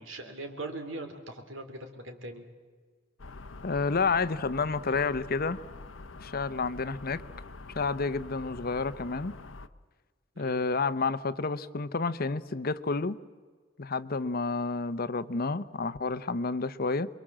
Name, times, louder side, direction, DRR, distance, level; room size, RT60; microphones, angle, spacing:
voice 1, 0.0-2.4 10.4-10.6, right 2 dB, 80° right, 5 dB, 3.6 m, -40 dB
sound 1, 3.2-9.7, left 3 dB, 75° left, 0.9 m, -45 dB
voice 2, 3.6-5.6 6.2-7.2 7.8-9.3 10.4-13.2 13.8-17.1, left 4 dB, 50° left, 14 dB, 0.8 m, -30 dB
28.0 x 23.0 x 7.6 m, 1.5 s
head